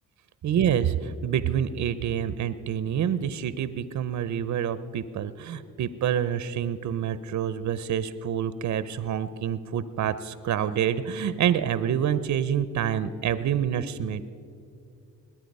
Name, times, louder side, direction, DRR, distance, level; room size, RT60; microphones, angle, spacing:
voice 1, 0.4-14.2, right 9 dB, 50° right, 14 dB, 0.6 m, -27 dB
20.5 x 9.0 x 5.4 m, 2.4 s
cardioid pair, 75°, 36 cm